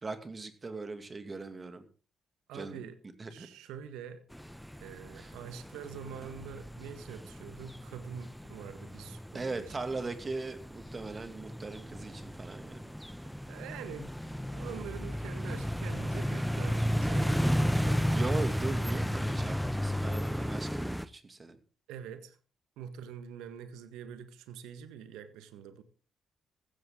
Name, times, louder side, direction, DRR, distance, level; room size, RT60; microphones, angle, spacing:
voice 1, 0.0-1.8 2.5-2.9 3.2-3.5 5.1-5.3 9.3-12.9 18.1-21.6, right 3 dB, 35° right, 2.6 m, -39 dB
voice 2, 2.5-3.0 3.3-4.2 4.8-9.9 13.5-18.3 21.9-22.4 22.8-25.8, right 8 dB, 75° right, 1.6 m, -45 dB
sound 1, 4.3-21.0, equal, ahead, 1.0 m, -33 dB
15.5 x 13.5 x 3.9 m
hypercardioid pair, 45°, 0 cm